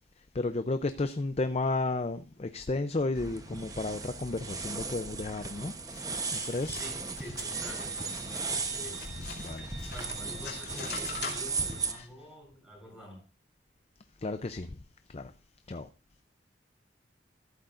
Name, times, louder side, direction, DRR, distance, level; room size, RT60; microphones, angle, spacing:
voice 1, 0.3-5.8 6.3-6.8 9.4-9.9 10.4-10.6 11.9-12.1 14.2-14.8 15.1-15.3 15.7-15.9, left 2 dB, 35° left, 0.5 m, -33 dB
sound 1, 3.2-11.9, right 4 dB, 20° right, 0.9 m, -36 dB
sound 2, 5.9-11.8, left 5 dB, 65° left, 3.1 m, -44 dB
voice 2, 6.7-9.0 9.9-13.2, left 1 dB, 5° right, 7.9 m, -47 dB
Wind instrument woodwind instrument, 7.5-12.0, right 4 dB, 65° right, 5.3 m, -50 dB
14.0 x 12.0 x 2.5 m
head